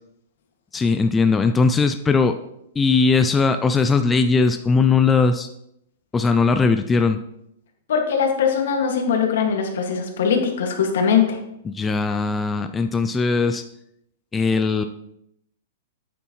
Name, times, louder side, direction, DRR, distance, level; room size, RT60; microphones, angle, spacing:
voice 1, 0.7-2.4 2.8-5.5 6.1-7.2 11.7-13.6 14.3-14.8, left 4 dB, 10° left, 7 dB, 0.3 m, -19 dB
voice 2, 7.9-11.4, left 6 dB, 75° left, 3 dB, 1.9 m, -21 dB
9.0 x 8.1 x 3.1 m, 0.78 s
supercardioid pair, 160°, 0 cm